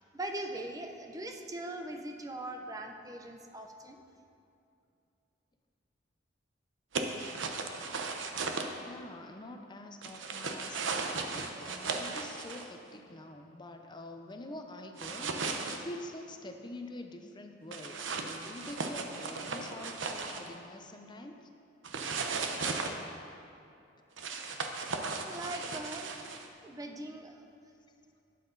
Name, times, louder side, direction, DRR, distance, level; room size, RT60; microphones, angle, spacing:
voice 1, 0.1-4.0 25.2-26.1 26.6-27.3, right 1 dB, 20° right, 4 dB, 0.7 m, -40 dB
sound 1, 6.9-8.7 10.0-12.7 15.0-15.8 17.7-20.5 21.8-22.9 24.2-26.5, right 4 dB, 80° right, 0.9 m, -36 dB
voice 2, 8.8-21.4, left 1 dB, 25° left, 4 dB, 0.7 m, -46 dB
12.0 x 9.4 x 4.0 m, 2.6 s
head